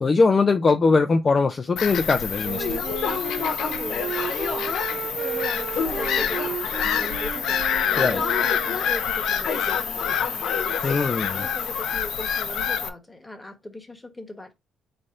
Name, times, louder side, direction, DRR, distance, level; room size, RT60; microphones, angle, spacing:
voice 1, 0.0-2.8 8.0-8.2 10.8-11.4, left 4 dB, 35° left, 0.5 m, -21 dB
Bird vocalization bird call bird song / Gull seagull, 1.8-12.9, left 8 dB, 80° left, 0.6 m, -27 dB
Wind instrument woodwind instrument, 2.4-9.1, right 7 dB, 55° right, 0.6 m, -34 dB
sound 1, 2.6-7.1 7.9-9.1 9.4-11.0, left 6 dB, 65° left, 1.0 m, -31 dB
voice 2, 3.7-4.3 4.6-10.2 10.6-14.5, left 2 dB, 15° left, 1.2 m, -39 dB
4.1 x 3.3 x 3.7 m
cardioid pair, 90°, 0 cm